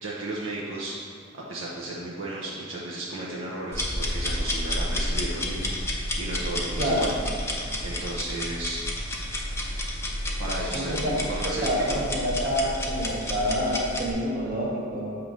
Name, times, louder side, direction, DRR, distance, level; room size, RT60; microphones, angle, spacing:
voice 1, 0.0-1.0 1.3-7.1 7.8-8.8 10.4-12.0, right 2 dB, 70° right, -6 dB, 0.8 m, -34 dB
sound 1, 3.7-14.1, left 1 dB, 15° left, 0.6 m, -30 dB
voice 2, 6.8-7.1 10.7-11.2 11.4-15.3, equal, 45° right, -5 dB, 1.4 m, -27 dB
7.5 x 2.9 x 5.1 m, 2.2 s
head